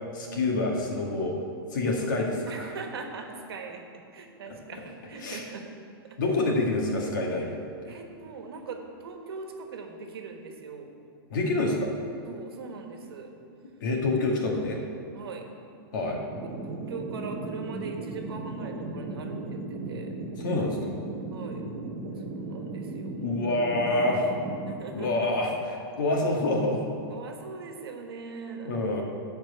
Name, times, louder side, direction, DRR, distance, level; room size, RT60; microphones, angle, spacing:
voice 1, 0.1-1.4 1.7-2.7 5.2-5.4 6.2-7.6 7.9-8.0 11.3-11.9 13.8-14.8 15.9-16.2 20.4-20.9 23.2-24.3 24.9-26.8 28.7-29.0, left 2 dB, 50° left, 0 dB, 1.8 m, -27 dB
voice 2, 2.5-5.7 6.1-6.2 7.9-10.9 12.2-13.4 15.1-15.5 16.4-20.1 21.3-21.6 22.1-23.3 24.6-25.3 27.1-29.0, right 4 dB, 75° right, 3 dB, 1.5 m, -41 dB
sound 1, 16.3-24.7, right 3 dB, 25° right, 0.9 m, -36 dB
10.5 x 4.6 x 8.0 m, 2.6 s
supercardioid pair, 180°, 13 cm